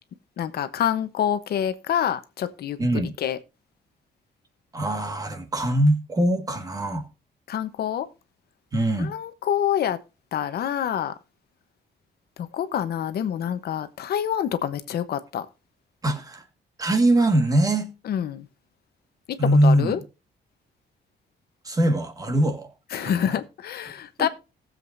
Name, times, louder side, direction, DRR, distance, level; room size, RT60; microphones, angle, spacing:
voice 1, 0.4-3.4 7.5-8.1 9.0-10.0 10.3-11.2 12.4-15.5 18.0-18.5 19.3-20.0 22.9-24.3, left 9 dB, 60° left, 0.9 m, -27 dB
voice 2, 2.8-3.1 4.7-7.0 8.7-9.1 16.0-16.4 16.8-17.9 19.4-19.9 21.6-23.3, right 1 dB, 20° right, 1.6 m, -22 dB
18.5 x 7.6 x 2.6 m
cardioid pair, 175°, 18 cm